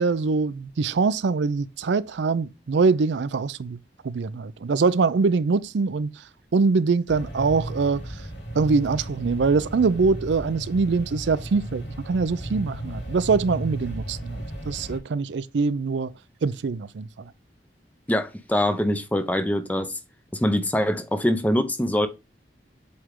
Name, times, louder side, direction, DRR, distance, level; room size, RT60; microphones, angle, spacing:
voice 1, 0.0-3.8 4.0-6.1 6.5-8.0 8.5-16.1 16.4-17.3, right 4 dB, 85° right, 0.4 m, -23 dB
sound 1, 7.1-15.0, right 1 dB, 90° left, 2.1 m, -35 dB
voice 2, 18.1-19.9 20.3-22.1, left 1 dB, 10° left, 0.5 m, -23 dB
7.9 x 3.3 x 3.7 m
head